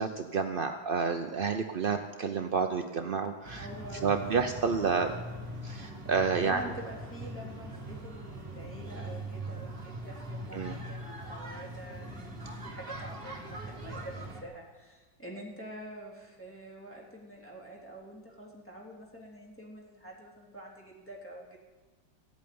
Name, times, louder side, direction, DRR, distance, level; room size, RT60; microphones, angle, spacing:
voice 1, 0.0-3.7 4.0-5.1 5.6-6.6 10.5-10.7, right 5 dB, 65° right, 6 dB, 0.5 m, -29 dB
voice 2, 3.4-4.5 4.9-5.2 6.4-21.6, right 1 dB, 5° left, -3 dB, 3.3 m, -46 dB
sound 1, 3.4-14.4, right 1 dB, 30° right, 2.0 m, -41 dB
15.5 x 8.6 x 9.5 m, 1.3 s
omnidirectional pair, 2.0 m